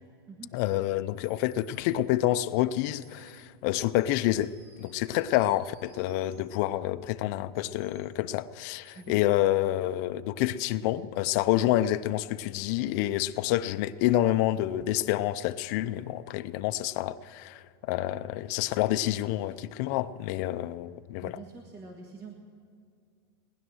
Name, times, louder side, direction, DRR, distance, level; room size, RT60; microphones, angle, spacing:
voice 1, 0.5-4.5 4.8-21.3, left 14 dB, 40° left, 0.5 m, -28 dB
sound 1, 1.2-2.0 2.9-3.5 4.0-6.5 7.6-8.1 8.8-9.2, right 3 dB, 85° right, 3.6 m, -59 dB
voice 2, 21.2-22.4, right 4 dB, 25° right, 1.5 m, -45 dB
19.5 x 11.0 x 6.3 m
supercardioid pair, 160°, 13 cm